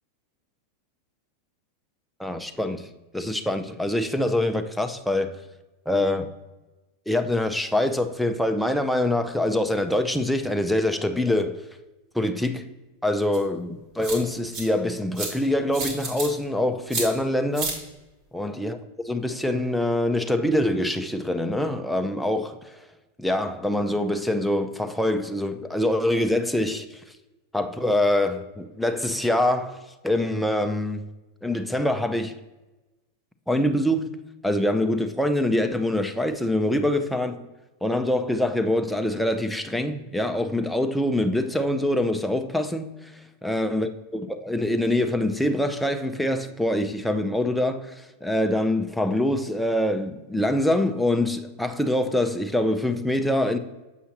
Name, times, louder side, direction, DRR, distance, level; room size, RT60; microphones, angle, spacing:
voice 1, 2.2-2.8 3.1-5.3 5.9-6.3 7.1-11.6 12.1-12.7 13.0-17.8 18.3-22.6 23.2-27.0 27.5-29.8 30.0-31.0 31.4-32.3 33.5-34.1 34.4-37.5 37.8-43.1 43.4-53.6, left 1 dB, ahead, 0.5 m, -24 dB
sound 1, 13.3-13.4 14.0-14.6 15.1-15.3 15.7-16.3 16.9-17.1 17.5-17.7, right 3 dB, 45° right, 2.1 m, -29 dB
7.4 x 5.6 x 2.9 m
hypercardioid pair, 110°, 0 cm